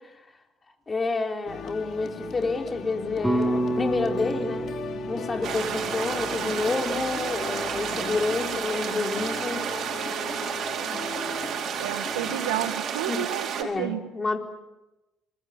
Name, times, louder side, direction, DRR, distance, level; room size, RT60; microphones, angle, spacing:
voice 1, 0.9-4.7 5.1-9.7 13.1-13.2 13.6-14.4, left 3 dB, 30° left, 5 dB, 4.4 m, -29 dB
sound 1, 1.5-12.7, left 7 dB, 55° left, 2.9 m, -39 dB
sound 2, 3.2-7.5, right 1 dB, ahead, 5.8 m, -30 dB
sound 3, 5.4-13.6, right 8 dB, 55° right, 4.5 m, -31 dB
voice 2, 11.8-14.1, right 13 dB, 85° right, 12 dB, 1.6 m, -31 dB
25.5 x 22.0 x 9.8 m, 1.0 s
hypercardioid pair, 60°, 0 cm